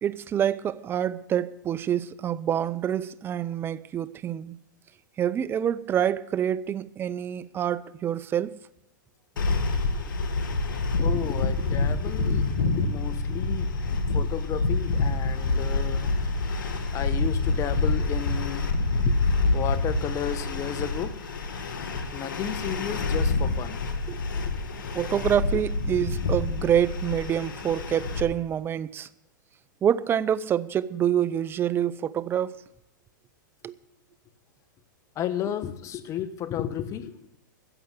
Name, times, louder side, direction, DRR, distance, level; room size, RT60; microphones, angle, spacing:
voice 1, 0.0-4.6 5.2-8.6 24.1-24.2 24.9-29.1 29.8-32.6 33.6-33.8, right 9 dB, 20° right, 0.5 m, -27 dB
sound 1, 9.4-28.2, left 3 dB, 75° left, 1.9 m, -27 dB
voice 2, 11.0-16.1 16.9-18.8 19.0-21.2 22.1-23.8 25.5-25.6 26.0-26.1 35.1-37.4, left 10 dB, 30° left, 1.2 m, -33 dB
14.0 x 8.0 x 7.5 m
hypercardioid pair, 120°, 11 cm